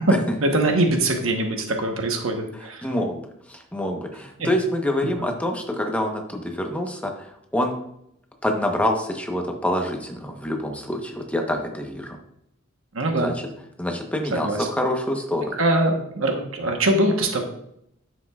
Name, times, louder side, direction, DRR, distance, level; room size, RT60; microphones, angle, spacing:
voice 1, 0.4-2.8 4.4-4.5 5.0-5.1 12.9-13.3 14.3-14.6 15.5-17.4, right 1 dB, 75° right, 3 dB, 1.2 m, -23 dB
voice 2, 2.8-7.8 8.4-12.2 13.1-13.3 13.8-15.5, left 1 dB, 5° left, 2 dB, 1.0 m, -26 dB
9.8 x 7.3 x 2.4 m, 0.75 s
head